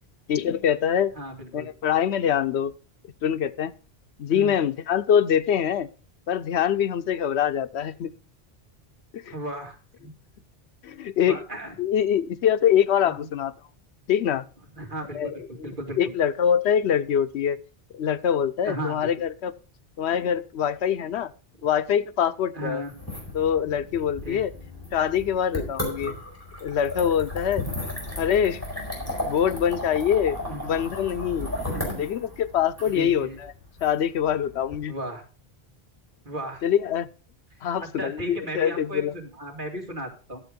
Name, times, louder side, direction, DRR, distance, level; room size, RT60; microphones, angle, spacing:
voice 1, 0.3-1.1 1.5-2.7 3.2-3.7 4.2-5.9 6.3-8.1 9.1-9.3 10.8-11.4 11.8-13.5 14.1-14.4 15.1-15.7 16.0-17.6 17.9-19.5 20.0-21.3 21.6-22.8 23.3-24.5 24.9-26.1 26.6-27.6 28.2-28.6 29.1-30.4 30.6-31.5 32.0-33.5 33.8-34.9 36.6-37.1 37.6-39.1, left 9 dB, 85° left, 13 dB, 1.0 m, -24 dB
voice 2, 1.1-1.7 4.3-4.6 9.3-10.1 11.2-11.7 13.0-13.1 14.7-16.1 18.6-19.1 22.5-22.9 24.2-24.4 30.5-30.8 31.7-32.0 32.8-33.4 34.9-35.2 36.2-36.6 37.6-40.4, right 1 dB, 50° right, 0 dB, 2.7 m, -35 dB
sound 1, 22.9-34.8, left 1 dB, 15° left, 4.4 m, -35 dB
12.0 x 7.6 x 5.1 m, 0.36 s
omnidirectional pair, 1.1 m